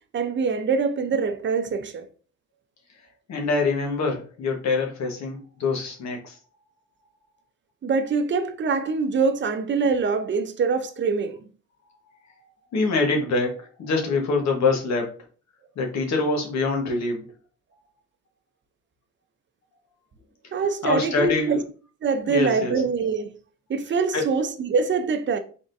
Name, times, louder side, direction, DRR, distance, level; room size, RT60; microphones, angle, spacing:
voice 1, 0.1-2.1 7.8-11.4 20.5-21.6 22.0-23.3 23.7-25.4, right 5 dB, 40° right, 0.6 m, -24 dB
voice 2, 3.0-6.4 12.7-15.1 15.7-17.3 20.4-21.6 22.3-22.8 24.1-24.3, left 3 dB, 65° left, 1.2 m, -25 dB
3.9 x 3.6 x 2.6 m
cardioid pair, 90°, 30 cm